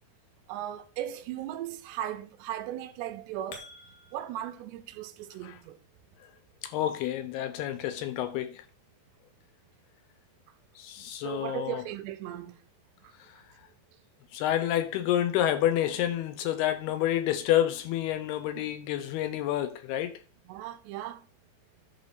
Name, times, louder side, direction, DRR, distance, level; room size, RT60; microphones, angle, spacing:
voice 1, 0.5-3.6 4.1-5.8 11.2-12.6 13.0-13.4 18.6-18.7 20.5-21.3, right 12 dB, 80° right, 2.7 m, -37 dB
sound 1, 3.0-4.5, left 4 dB, 60° left, 3.3 m, -49 dB
voice 2, 6.6-8.7 10.8-11.8 13.3-13.4 14.3-20.2, left 12 dB, 80° left, 2.4 m, -29 dB
11.0 x 4.0 x 6.5 m
omnidirectional pair, 5.0 m